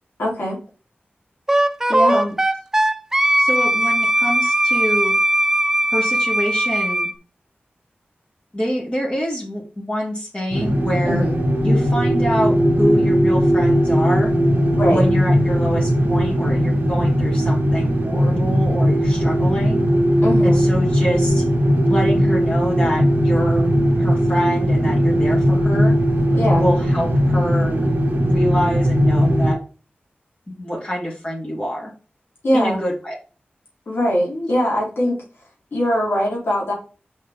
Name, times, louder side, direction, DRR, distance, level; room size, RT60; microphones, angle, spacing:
voice 1, 0.2-0.6 1.9-2.3 11.0-11.4 14.7-15.0 20.2-20.6 26.3-26.6 32.4-32.8 33.9-35.2 35.7-36.7, equal, 80° left, -4 dB, 3.8 m, -21 dB
Wind instrument woodwind instrument, 1.5-7.1, right 1 dB, 10° right, 0.5 m, -19 dB
voice 2, 3.4-5.1 5.9-7.1 8.5-11.2 11.6-14.3 14.8-19.8 20.4-21.4 21.9-23.7 24.0-25.9 26.5-27.9 28.2-29.6 30.6-31.9 32.5-33.1, equal, 30° left, -4 dB, 3.2 m, -26 dB
sound 1, 10.5-29.5, equal, 55° right, 1.6 m, -18 dB
6.0 x 5.1 x 3.7 m, 0.35 s
wide cardioid pair, 105°, 4 cm